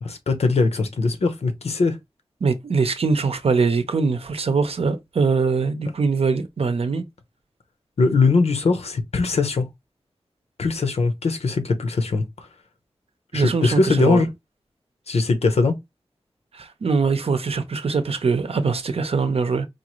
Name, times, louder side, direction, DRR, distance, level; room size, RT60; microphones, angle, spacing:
voice 1, 0.0-2.0 8.0-9.7 10.6-12.2 13.3-14.3 15.1-15.7, left 3 dB, 90° left, 0.8 m, -20 dB
voice 2, 2.4-7.0 13.3-14.3 16.5-19.7, right 4 dB, 70° right, 0.7 m, -22 dB
4.5 x 2.5 x 3.0 m
wide cardioid pair, 90°, 10 cm